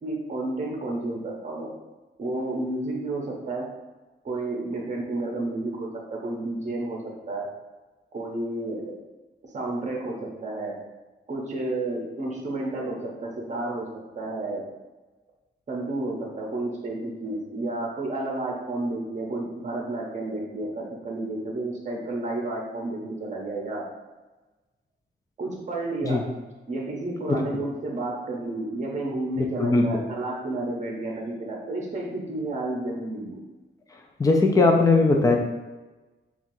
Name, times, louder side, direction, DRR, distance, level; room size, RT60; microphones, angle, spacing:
voice 1, 0.0-1.7 2.2-3.6 4.2-7.0 7.3-7.5 8.1-8.9 9.5-10.7 11.3-13.9 14.1-14.6 15.7-23.8 25.4-26.2 26.7-33.4, right 2 dB, 40° right, -1 dB, 0.8 m, -31 dB
voice 2, 29.4-29.9 34.2-35.4, left 3 dB, 20° left, 2 dB, 0.4 m, -19 dB
5.7 x 2.4 x 2.6 m, 1.2 s
wide cardioid pair, 150°, 20 cm